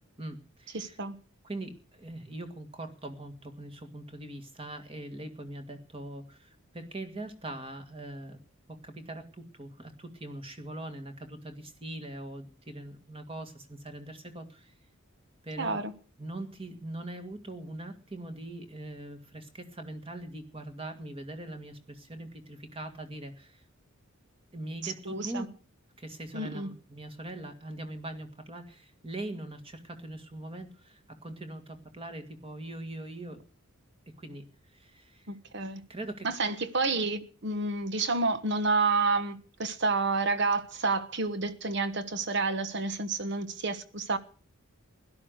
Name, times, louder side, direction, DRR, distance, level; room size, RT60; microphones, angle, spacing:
voice 1, 0.2-1.0 1.4-8.4 8.7-14.7 15.4-15.9 16.2-23.7 24.5-25.5 26.0-33.4 34.2-35.4 35.9-36.3, right 1 dB, 25° right, 1.8 m, -42 dB
voice 2, 0.7-1.2 15.6-15.9 24.8-25.5 26.3-26.7 35.3-35.8 36.2-44.2, right 3 dB, 55° right, 1.3 m, -29 dB
16.5 x 12.0 x 6.5 m
head